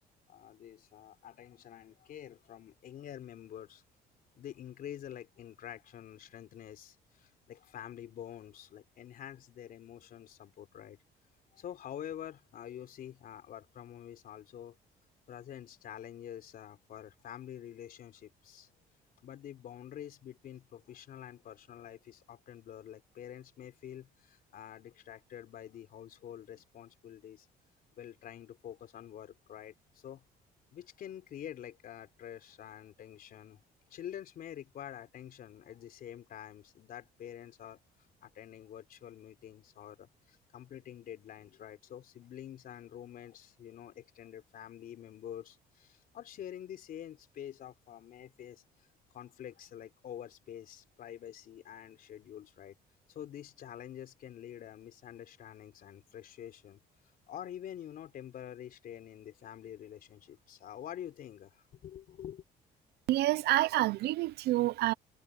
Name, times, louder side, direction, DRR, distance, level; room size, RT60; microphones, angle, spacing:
voice 1, 0.3-3.8 4.4-11.0 11.5-14.8 15.3-18.7 19.2-27.5 28.0-30.2 30.7-33.6 33.9-37.8 38.2-48.6 49.1-52.8 53.1-56.8 57.3-62.4, left 10 dB, 60° left, 3.7 m, -47 dB
voice 2, 63.1-64.9, right 16 dB, 75° right, 0.7 m, -28 dB
cardioid pair, 110°, 17 cm